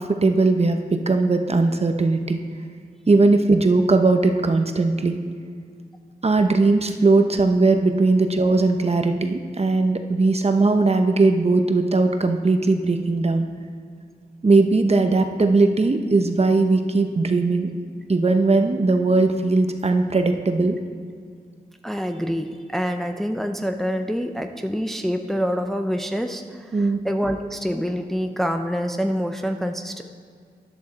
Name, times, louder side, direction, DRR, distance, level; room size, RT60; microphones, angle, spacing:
voice 1, 0.0-2.4 3.1-5.2 6.2-13.5 14.4-17.7 18.1-20.8 26.7-27.0, right 3 dB, 40° right, 6 dB, 0.9 m, -19 dB
voice 2, 21.8-30.0, equal, ahead, 5 dB, 0.6 m, -26 dB
13.0 x 11.0 x 4.2 m, 2.1 s
wide cardioid pair, 85°, 17 cm